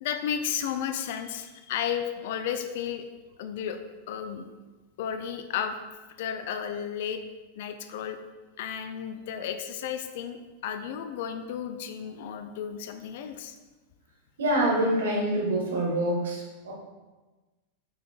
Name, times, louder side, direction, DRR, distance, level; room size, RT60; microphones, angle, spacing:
voice 1, 0.0-3.1 3.4-3.8 4.1-4.4 5.0-5.7 6.2-7.2 7.6-8.2 8.6-13.5, left 8 dB, 50° left, 8 dB, 0.5 m, -33 dB
voice 2, 14.4-16.7, right 1 dB, 65° right, -2 dB, 1.8 m, -26 dB
8.2 x 5.7 x 2.4 m, 1.2 s
figure-of-eight pair, 90°, 0 cm